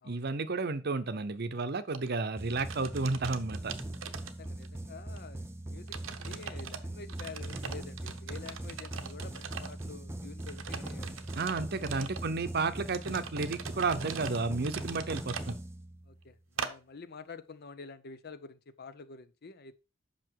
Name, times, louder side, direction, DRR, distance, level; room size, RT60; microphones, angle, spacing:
voice 1, 0.0-3.7 11.3-15.6, right 3 dB, 55° right, 0.8 m, -32 dB
sound 1, 1.9-2.1 2.5-4.8 5.2-5.3 5.9-6.8 7.1-9.8 10.4-12.2 12.9-15.5 16.6-16.7, right 6 dB, 85° right, 0.8 m, -42 dB
sound 2, 2.4-16.3, right 1 dB, 15° right, 0.7 m, -41 dB
voice 2, 4.4-6.0 6.2-11.1 11.7-12.1 16.1-19.7, left 4 dB, 55° left, 0.7 m, -48 dB
7.9 x 5.9 x 4.6 m
head